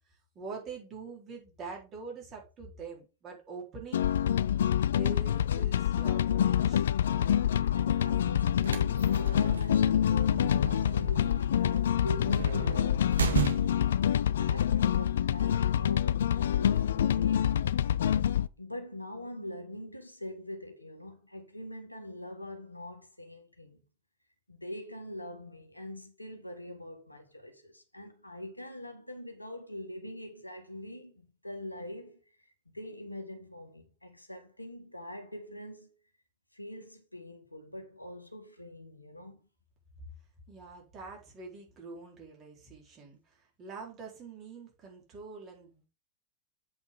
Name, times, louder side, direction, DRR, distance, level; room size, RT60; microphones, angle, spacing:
voice 1, 0.1-4.1 5.0-6.9 40.5-45.9, right 4 dB, 30° right, 4.0 m, -45 dB
sound 1, 3.9-18.5, left 10 dB, 65° left, 0.3 m, -26 dB
voice 2, 7.8-17.9 18.6-23.8 24.5-35.9 36.5-39.5, left 1 dB, 85° left, 1.8 m, -44 dB
sound 2, 8.4-14.0, right 7 dB, 70° right, 1.2 m, -35 dB
8.0 x 5.3 x 5.4 m
figure-of-eight pair, 90°, 0 cm